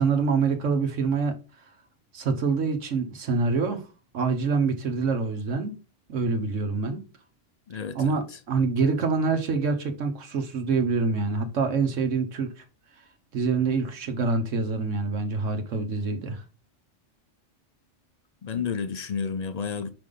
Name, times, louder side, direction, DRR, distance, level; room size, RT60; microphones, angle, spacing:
voice 1, 0.0-1.3 2.1-3.8 4.1-5.8 6.1-7.0 7.9-12.5 13.3-16.4, right 4 dB, 80° right, 1.3 m, -26 dB
voice 2, 7.7-8.2 18.4-19.9, left 6 dB, 50° left, 0.5 m, -31 dB
5.1 x 4.9 x 3.8 m
omnidirectional pair, 1.3 m